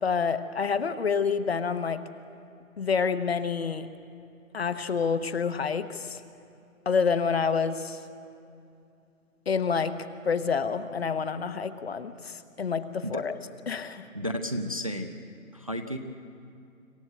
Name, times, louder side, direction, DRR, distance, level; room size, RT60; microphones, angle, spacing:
voice 1, 0.0-2.0 2.8-3.9 4.5-6.2 6.8-8.0 9.5-13.3 13.7-14.1, left 5 dB, 45° left, 10 dB, 1.0 m, -28 dB
voice 2, 14.1-15.2 15.5-16.0, equal, 25° right, 6 dB, 0.5 m, -32 dB
26.0 x 15.0 x 8.0 m, 2.5 s
figure-of-eight pair, 160°, 42 cm